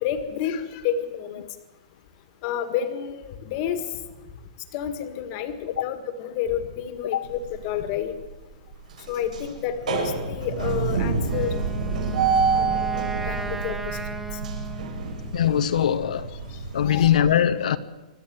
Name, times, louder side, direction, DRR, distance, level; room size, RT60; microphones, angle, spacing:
voice 1, 0.0-1.5 2.4-3.8 4.7-8.2 9.1-11.6 12.5-12.7 13.3-14.0 16.9-17.1, left 9 dB, 30° left, 1.8 m, -29 dB
sound 1, 7.2-7.8 8.2-8.3 8.7-17.2, right 5 dB, 75° right, 6.5 m, -28 dB
Wind instrument woodwind instrument, 11.2-15.4, right 3 dB, 5° right, 0.9 m, -36 dB
voice 2, 15.3-16.3 16.7-17.8, left 9 dB, 70° left, 1.0 m, -21 dB
25.5 x 12.0 x 9.5 m
hypercardioid pair, 175°, 4 cm